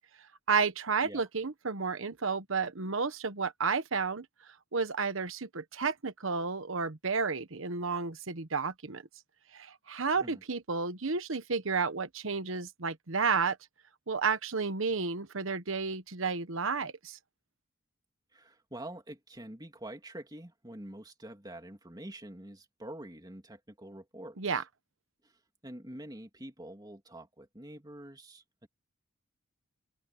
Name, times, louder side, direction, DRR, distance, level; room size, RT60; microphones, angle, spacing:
voice 1, 0.5-4.3 4.7-9.0 9.5-13.6 14.1-17.2 24.4-24.6, right 5 dB, 70° right, 1.1 m, -31 dB
voice 2, 18.3-24.6 25.2-25.4 25.6-28.4, right 1 dB, 20° right, 2.7 m, -46 dB
open air
head